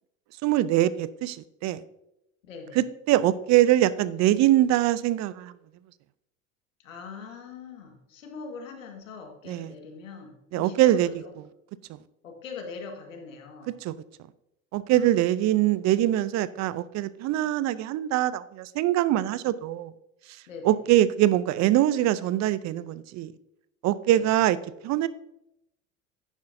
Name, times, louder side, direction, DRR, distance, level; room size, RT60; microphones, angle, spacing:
voice 1, 0.4-1.8 2.8-5.5 9.5-9.7 10.5-11.1 11.9-12.0 13.7-13.9 14.7-19.9 20.6-23.3 23.8-24.6 24.8-25.1, right 13 dB, 45° right, 17 dB, 0.6 m, -23 dB
voice 2, 2.4-2.8 6.8-11.3 12.2-13.7 15.0-15.3 20.5-20.8 24.1-24.2, left 5 dB, 85° left, 3 dB, 1.8 m, -42 dB
10.5 x 9.5 x 2.7 m, 0.84 s
hypercardioid pair, 75°, 38 cm